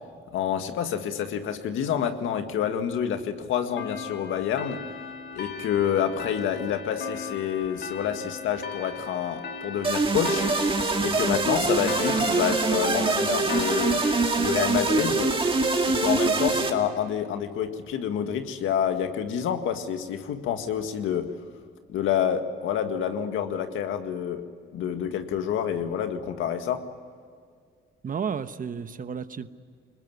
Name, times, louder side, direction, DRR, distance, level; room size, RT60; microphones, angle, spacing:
voice 1, 0.3-4.8 5.3-10.4 11.0-14.0 14.4-15.3 15.9-21.3 21.9-24.4 24.7-26.8, left 9 dB, 85° left, 1.9 m, -28 dB
sound 1, 3.8-16.9, left 6 dB, 55° left, 2.2 m, -38 dB
sound 2, 9.8-16.7, right 3 dB, 25° right, 2.6 m, -24 dB
voice 2, 28.0-29.5, right 6 dB, 45° right, 1.1 m, -32 dB
21.5 x 20.5 x 9.7 m
cardioid pair, 90°, 20 cm